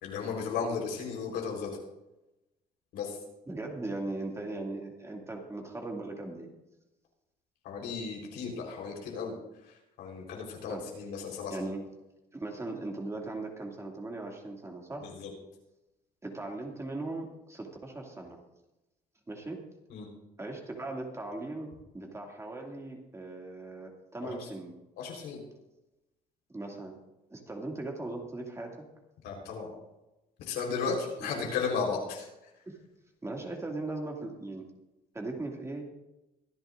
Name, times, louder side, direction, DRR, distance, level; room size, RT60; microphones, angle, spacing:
voice 1, 0.0-1.7 2.9-3.2 7.6-9.3 9.6-11.7 15.0-15.3 19.9-20.1 24.2-24.5 25.0-25.4 29.2-29.7 30.4-32.5, left 5 dB, 85° left, 0 dB, 4.2 m, -35 dB
voice 2, 3.5-6.5 10.7-10.8 11.5-11.8 12.3-15.1 16.2-18.4 19.3-19.6 20.4-24.7 26.5-27.0 27.3-28.7 30.9-31.0 31.2-31.5 32.7-32.8 33.2-34.7 35.1-35.8, right 2 dB, 15° right, 1 dB, 2.4 m, -38 dB
23.5 x 10.5 x 2.6 m, 0.98 s
cardioid pair, 110°, 17 cm